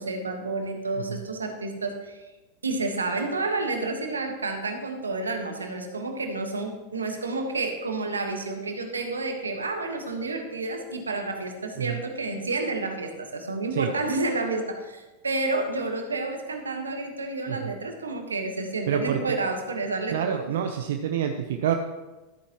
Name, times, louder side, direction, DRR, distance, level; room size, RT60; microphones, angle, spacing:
voice 1, 0.0-2.3 2.6-20.4, right 3 dB, 90° right, 4 dB, 1.3 m, -30 dB
voice 2, 18.9-19.3 20.1-21.7, right 9 dB, 70° right, 5 dB, 0.6 m, -27 dB
13.5 x 8.4 x 3.0 m, 1.1 s
hypercardioid pair, 90°, 0 cm